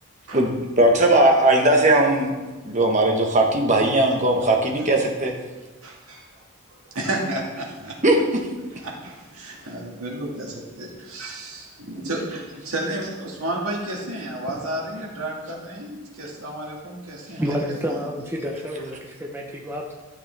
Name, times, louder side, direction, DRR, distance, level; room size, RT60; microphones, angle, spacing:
voice 1, 0.8-2.3 2.6-5.3 8.0-8.2, right 1 dB, 35° right, 1 dB, 1.3 m, -18 dB
voice 2, 5.8-6.4 6.8-8.0 8.7-17.6 17.9-18.0, right 1 dB, 80° right, -1 dB, 2.0 m, -32 dB
voice 3, 17.4-19.9, equal, 10° right, 0 dB, 0.8 m, -29 dB
12.5 x 6.6 x 3.4 m, 1.3 s
head